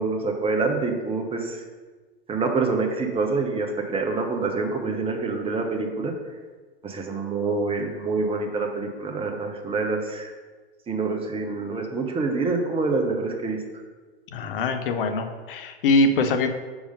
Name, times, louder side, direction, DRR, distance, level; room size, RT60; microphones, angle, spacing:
voice 1, 0.0-1.6 2.3-6.1 6.8-10.3 10.9-13.6, right 3 dB, 20° right, 3 dB, 0.9 m, -26 dB
voice 2, 14.3-16.5, left 2 dB, 60° left, 7 dB, 0.8 m, -23 dB
5.0 x 4.8 x 5.3 m, 1.4 s
figure-of-eight pair, 85°, 30 cm